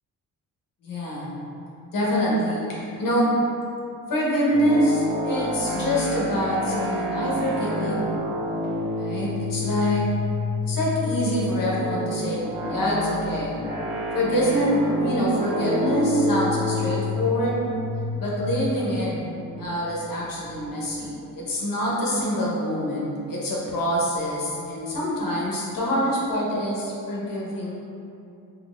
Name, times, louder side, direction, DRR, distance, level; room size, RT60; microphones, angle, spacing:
voice 1, 0.8-1.3 1.9-3.4 4.1-8.2 8.9-10.0 10.7-13.5 14.1-17.7 18.2-19.2 19.6-27.7, equal, 55° left, -5 dB, 1.1 m, -25 dB
sound 1, 4.5-21.0, left 1 dB, 25° right, 1.3 m, -29 dB
3.9 x 3.0 x 2.5 m, 2.7 s
supercardioid pair, 55°, 41 cm